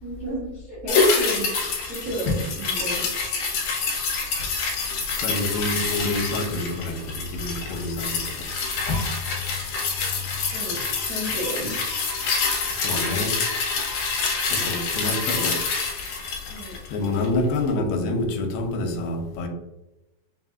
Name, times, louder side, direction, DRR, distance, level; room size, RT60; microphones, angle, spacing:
voice 1, 0.0-3.1 10.5-10.8 11.1-11.7 16.5-16.7, right 1 dB, 85° right, 0.8 m, -33 dB
sound 1, 0.9-17.4 17.7-17.8, left 4 dB, 70° left, 2.1 m, -26 dB
voice 2, 5.2-8.4 12.7-13.4 14.5-15.6 16.9-19.5, left 2 dB, 85° left, 2.3 m, -27 dB
5.5 x 2.8 x 2.4 m
omnidirectional pair, 4.0 m